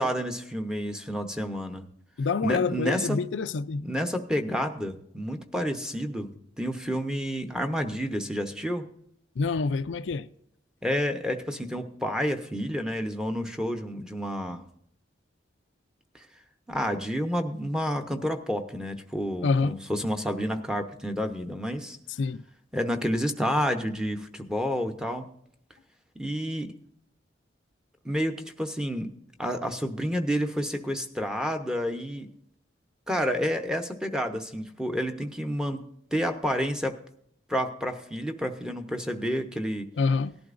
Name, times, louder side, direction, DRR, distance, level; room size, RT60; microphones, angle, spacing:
voice 1, 0.0-1.8 2.4-3.2 3.8-8.9 10.8-14.6 16.1-16.2 16.7-22.0 22.7-25.3 26.2-26.7 28.0-29.1 29.4-32.3 33.1-35.8 36.1-37.0 37.5-39.9, equal, 5° right, 0.9 m, -29 dB
voice 2, 2.2-3.8 9.4-10.3 19.4-19.8 22.2-22.4 40.0-40.4, left 4 dB, 85° left, 0.5 m, -27 dB
18.0 x 11.5 x 2.6 m
head